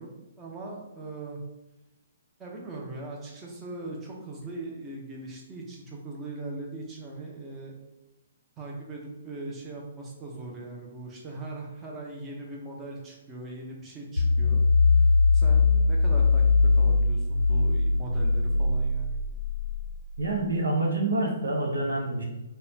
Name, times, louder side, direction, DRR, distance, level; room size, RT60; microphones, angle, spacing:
voice 1, 0.0-1.4 2.4-7.8 8.6-14.6 15.3-16.4 16.8-19.2, right 2 dB, 20° right, -2 dB, 0.8 m, -40 dB
sound 1, 14.2-20.4, left 3 dB, 85° left, 0.4 m, -22 dB
voice 2, 20.2-22.2, right 2 dB, 75° right, 0 dB, 0.9 m, -27 dB
5.1 x 2.3 x 2.7 m, 0.98 s
figure-of-eight pair, 130°, 0 cm